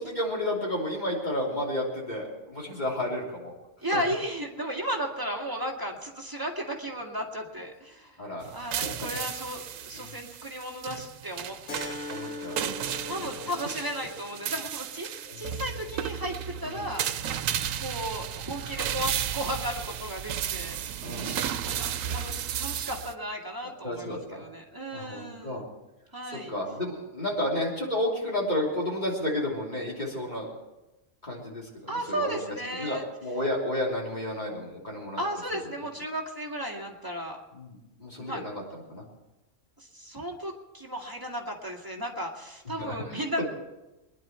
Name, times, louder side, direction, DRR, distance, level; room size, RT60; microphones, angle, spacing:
voice 1, 0.0-3.5 3.9-4.0 8.2-9.2 9.9-10.1 12.1-12.6 13.1-13.2 15.2-15.5 16.6-16.9 21.0-21.4 23.6-24.4 24.9-25.6 26.3-30.5 31.2-32.4 32.8-35.2 37.5-39.0 42.8-43.5, left 1 dB, 35° left, -3 dB, 3.3 m, -32 dB
voice 2, 3.8-8.3 8.5-12.0 13.1-15.1 15.4-16.4 16.6-17.4 17.8-20.8 21.6-25.7 26.1-26.6 31.9-33.1 35.2-37.4 38.2-38.4 39.8-43.4, equal, 15° right, -1 dB, 2.0 m, -34 dB
sound 1, 8.4-23.1, right 9 dB, 90° right, 1.0 m, -34 dB
Keyboard (musical), 11.7-16.8, left 3 dB, 75° left, 1.9 m, -42 dB
23.0 x 10.5 x 4.5 m, 1.0 s
omnidirectional pair, 1.3 m